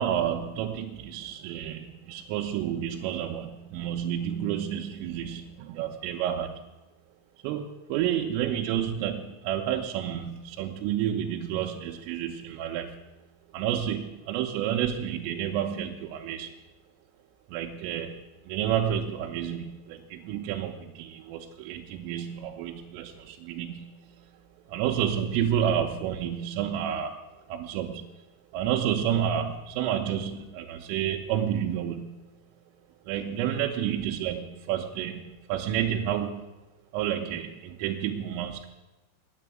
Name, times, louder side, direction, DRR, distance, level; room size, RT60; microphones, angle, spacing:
voice 1, 0.0-6.7 7.4-13.0 13.5-16.5 17.5-24.3 24.7-27.2 27.5-28.2 28.5-32.3 33.1-36.5 36.9-38.7, right 9 dB, 85° right, 1 dB, 3.2 m, -30 dB
9.2 x 9.1 x 8.8 m, 1.1 s
omnidirectional pair, 6.0 m